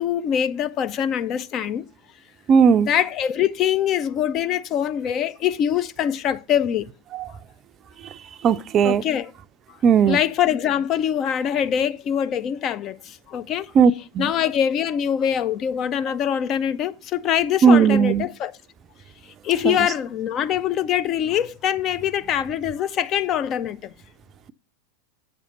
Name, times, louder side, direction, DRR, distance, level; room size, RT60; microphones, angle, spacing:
voice 1, 0.0-1.8 2.8-6.9 8.8-9.3 10.1-13.7 14.2-18.5 19.4-23.9, left 9 dB, 30° left, 0.4 m, -23 dB
voice 2, 2.5-2.9 8.4-9.0 9.8-10.2 13.8-14.3 17.6-18.3 19.6-19.8, right 6 dB, 30° right, 0.4 m, -16 dB
8.6 x 6.3 x 5.3 m
figure-of-eight pair, 90°, 0 cm